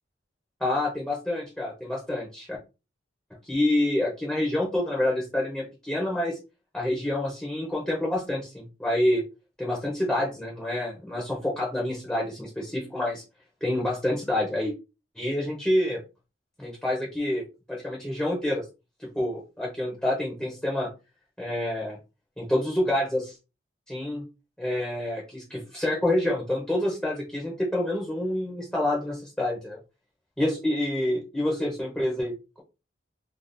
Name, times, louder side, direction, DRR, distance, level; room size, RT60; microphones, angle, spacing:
voice 1, 0.6-2.6 3.4-6.4 6.7-9.2 9.6-13.2 13.6-14.7 15.2-16.0 16.6-17.4 17.7-18.6 19.0-20.9 21.4-22.0 22.4-23.4 23.9-24.2 24.6-29.8 30.4-32.6, left 1 dB, 5° left, -3 dB, 0.6 m, -27 dB
2.5 x 2.3 x 3.6 m, 0.29 s
head